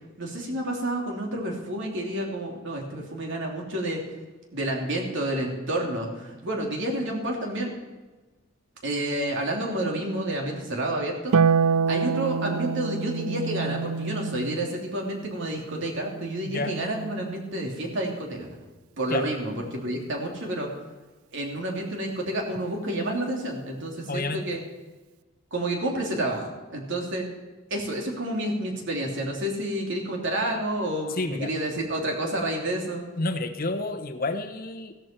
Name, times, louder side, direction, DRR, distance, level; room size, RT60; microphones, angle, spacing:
voice 1, 0.2-4.0 4.5-7.7 8.8-11.3 11.9-18.5 19.0-20.7 21.3-24.6 25.5-27.3 27.7-33.0, right 1 dB, 60° right, 0 dB, 3.1 m, -29 dB
Harp, 11.3-17.8 19.5-20.5, right 6 dB, 80° right, 0.4 m, -28 dB
voice 2, 24.1-24.4 31.1-31.5 33.2-34.9, left 2 dB, 45° left, 8 dB, 1.0 m, -30 dB
15.5 x 13.0 x 4.5 m, 1.2 s
head